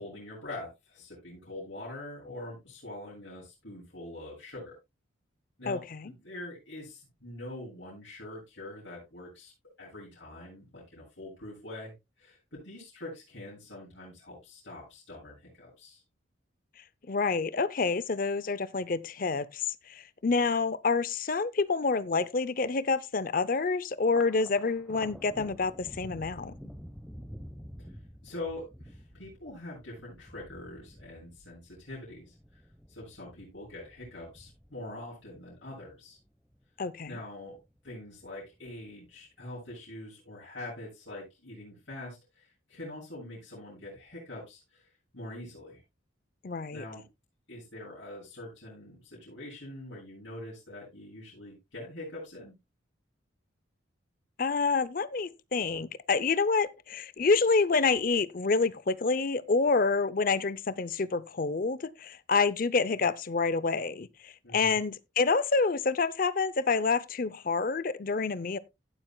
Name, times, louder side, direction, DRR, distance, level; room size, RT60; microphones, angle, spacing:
voice 1, 0.0-4.8 5.6-9.5 9.8-16.0 27.8-32.6 32.9-36.2 37.0-37.6 37.8-44.9 45.1-45.8 46.7-47.1 47.5-52.6 64.4-64.8, left 1 dB, 70° left, 7.5 m, -44 dB
voice 2, 5.7-6.1 17.1-26.6 36.8-37.2 46.4-46.8 54.4-68.6, left 4 dB, 45° left, 0.5 m, -28 dB
Thunder, 24.0-36.7 37.1-37.9 38.2-39.1, equal, ahead, 0.9 m, -49 dB
17.0 x 7.6 x 2.2 m
head